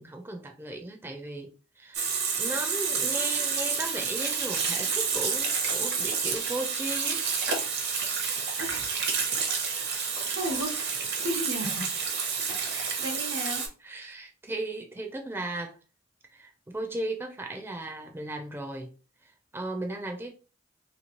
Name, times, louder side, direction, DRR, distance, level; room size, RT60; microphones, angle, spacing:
voice 1, 0.0-2.1 2.4-8.5 8.9-9.0 13.8-15.8 16.3-18.9 19.2-20.3, right 2 dB, 10° right, 0.4 m, -36 dB
Water tap faucet / Sink (filling or washing), 1.9-13.7, right 5 dB, 60° right, 0.8 m, -29 dB
voice 2, 8.6-8.9 10.3-10.7 11.2-12.1 12.7-13.6, right 1 dB, 85° right, 1.0 m, -34 dB
3.0 x 2.7 x 2.9 m
head